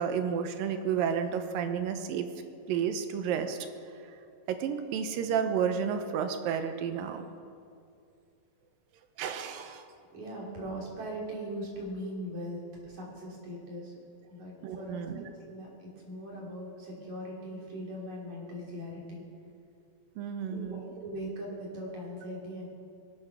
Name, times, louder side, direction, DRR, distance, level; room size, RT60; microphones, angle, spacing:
voice 1, 0.0-2.3 2.7-3.6 3.9-4.2 4.5-7.2 9.2-9.8 14.6-15.3 20.2-20.8, right 7 dB, 85° right, 8 dB, 2.6 m, -31 dB
voice 2, 10.1-13.9 14.3-19.2 20.5-22.7, equal, 55° right, -4 dB, 4.4 m, -40 dB
21.0 x 9.1 x 6.3 m, 2.4 s
omnidirectional pair, 4.0 m